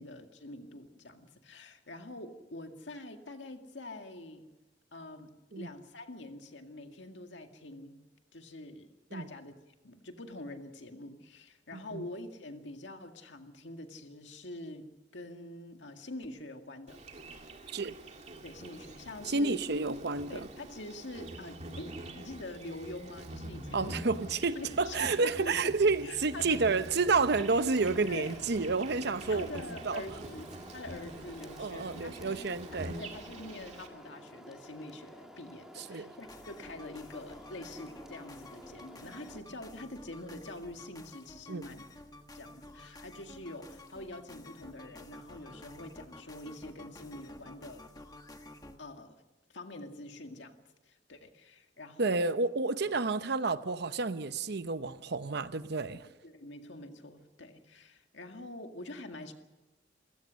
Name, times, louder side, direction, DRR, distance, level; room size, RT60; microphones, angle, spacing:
voice 1, 0.0-4.5 4.9-8.0 8.3-9.5 9.8-17.0 18.4-19.7 20.3-24.3 24.6-25.7 26.0-26.6 28.1-28.3 29.3-41.9 42.3-47.9 48.8-49.2 49.5-52.3 56.2-59.3, left 1 dB, 75° left, 2.0 m, -45 dB
voice 2, 11.7-12.1 17.7-17.9 19.2-20.5 23.7-29.5 29.8-30.0 31.6-32.9 35.8-36.1 41.5-41.6 52.0-56.0, right 4 dB, 65° right, 0.8 m, -30 dB
Insect, 16.9-33.9, right 1 dB, 40° right, 2.2 m, -45 dB
sound 1, 27.4-39.4, equal, 5° right, 2.0 m, -51 dB
sound 2, 36.2-48.8, left 2 dB, 20° left, 1.5 m, -51 dB
28.0 x 16.5 x 6.4 m
head